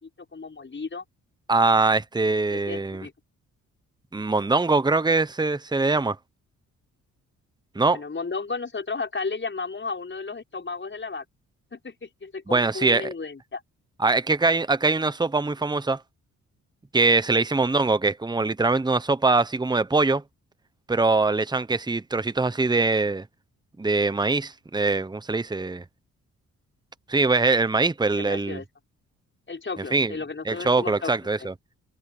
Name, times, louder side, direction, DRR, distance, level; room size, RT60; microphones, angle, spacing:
voice 1, 0.0-1.0 2.5-3.1 7.9-11.2 11.7-13.6 17.3-17.4 28.2-28.6 29.5-31.1 31.4-31.5, left 4 dB, 35° left, 6.0 m, -34 dB
voice 2, 1.5-3.1 4.1-6.2 7.7-8.0 12.5-13.1 14.0-16.0 16.9-20.2 20.9-23.2 23.8-25.8 27.1-28.6 29.9-30.1 30.5-31.5, right 3 dB, 15° right, 1.0 m, -22 dB
open air
cardioid pair, 65°, 33 cm